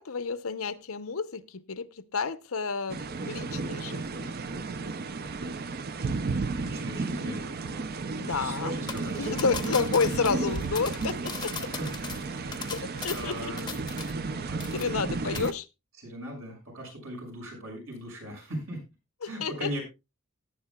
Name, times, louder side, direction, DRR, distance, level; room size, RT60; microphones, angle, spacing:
voice 1, 0.0-4.3 8.2-8.7 9.2-11.7 12.7-13.5 14.7-15.7 19.2-19.8, left 5 dB, 80° left, 12 dB, 0.8 m, -30 dB
sound 1, 2.9-15.5, right 3 dB, 45° right, 0.6 m, -33 dB
voice 2, 6.5-9.3 9.7-9.8 11.4-11.9 12.4-14.9 16.0-18.8 19.2-19.8, right 1 dB, 75° right, 0 dB, 6.4 m, -40 dB
sound 2, 8.9-14.3 14.6-15.1 15.4-15.5, left 6 dB, 20° left, 0.7 m, -39 dB
17.5 x 9.6 x 2.3 m, 0.26 s
head